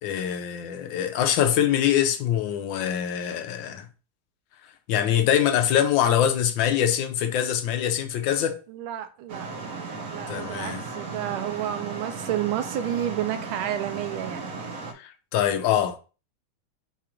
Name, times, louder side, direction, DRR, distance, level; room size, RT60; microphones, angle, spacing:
voice 1, 0.0-3.9 4.9-8.6 10.3-10.8 15.0-16.0, left 10 dB, 75° left, 1.2 m, -24 dB
voice 2, 8.7-9.5 10.0-14.5, right 12 dB, 80° right, 1.4 m, -30 dB
sound 1, 9.3-14.9, right 4 dB, 60° right, 0.9 m, -36 dB
4.8 x 2.5 x 4.3 m
omnidirectional pair, 2.4 m